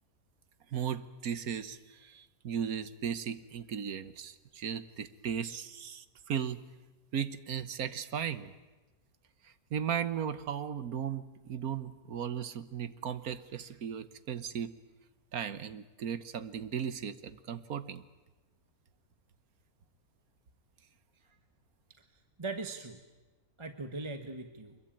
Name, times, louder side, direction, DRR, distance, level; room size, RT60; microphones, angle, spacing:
voice 1, 0.7-6.6 7.1-8.5 9.4-14.7 15.3-18.0, right 8 dB, 85° right, 13 dB, 1.6 m, -36 dB
voice 2, 22.1-23.0 23.6-24.8, right 3 dB, 20° right, 7 dB, 1.2 m, -41 dB
24.0 x 22.0 x 8.9 m, 1.2 s
omnidirectional pair, 1.5 m